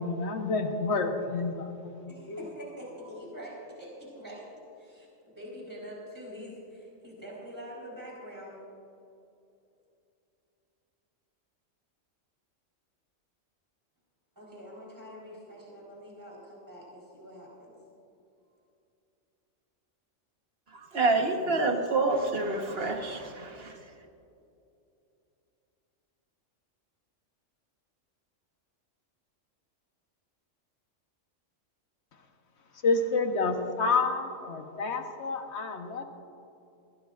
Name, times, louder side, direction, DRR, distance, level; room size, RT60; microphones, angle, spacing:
voice 1, 0.0-2.4 32.8-36.0, left 3 dB, 55° left, 5 dB, 1.4 m, -29 dB
voice 2, 2.1-8.6 14.4-17.7, equal, 15° right, -5 dB, 4.2 m, -45 dB
voice 3, 20.7-23.9, right 3 dB, 50° right, 3 dB, 1.5 m, -28 dB
21.0 x 16.5 x 2.5 m, 2.7 s
omnidirectional pair, 1.4 m